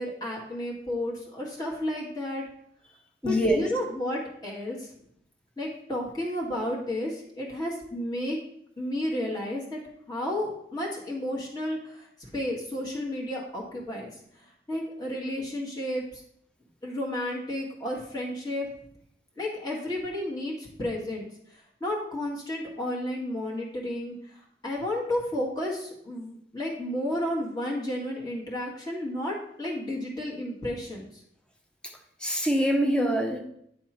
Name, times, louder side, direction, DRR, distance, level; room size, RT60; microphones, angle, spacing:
voice 1, 0.0-2.4 3.2-4.9 5.6-8.4 8.8-9.8 10.1-14.1 14.7-16.2 16.8-18.7 19.4-21.2 21.5-31.1, left 1 dB, 25° left, -4 dB, 1.7 m, -32 dB
voice 2, 3.2-3.6 32.2-33.4, equal, 5° left, 2 dB, 0.8 m, -24 dB
10.5 x 3.5 x 4.3 m, 0.72 s
head